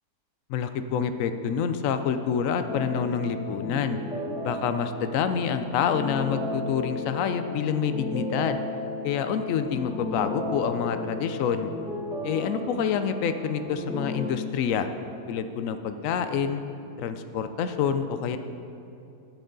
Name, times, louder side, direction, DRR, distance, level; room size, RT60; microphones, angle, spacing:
voice 1, 0.5-4.0 4.4-8.6 9.0-11.7 12.2-14.9 15.3-16.6 17.0-18.4, left 7 dB, 75° left, 9 dB, 0.7 m, -27 dB
sound 1, 2.7-14.3, left 2 dB, 5° right, 1.0 m, -34 dB
13.0 x 7.8 x 3.8 m, 2.8 s
omnidirectional pair, 1.9 m